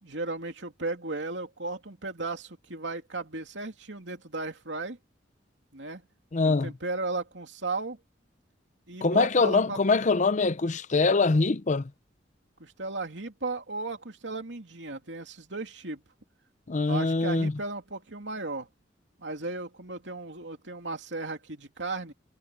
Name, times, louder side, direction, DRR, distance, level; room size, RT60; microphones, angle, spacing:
voice 1, 0.0-5.0 5.7-6.0 6.4-8.0 8.9-9.8 12.6-16.0 16.9-18.7 19.2-22.1, right 3 dB, 80° right, 2.9 m, -35 dB
voice 2, 6.3-6.7 9.0-11.9 16.7-17.6, left 3 dB, 40° left, 0.6 m, -24 dB
head